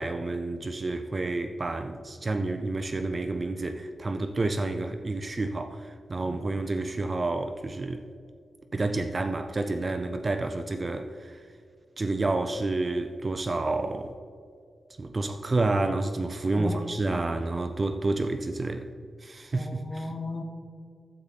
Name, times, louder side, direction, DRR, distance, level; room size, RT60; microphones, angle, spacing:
voice 1, 0.0-8.0 8.7-11.4 12.0-14.2 15.0-18.9 19.2-20.1, right 2 dB, 30° right, 0.5 m, -29 dB
voice 2, 19.5-20.4, left 2 dB, 25° left, 0.9 m, -36 dB
12.0 x 7.9 x 4.1 m
wide cardioid pair, 155°, 0 cm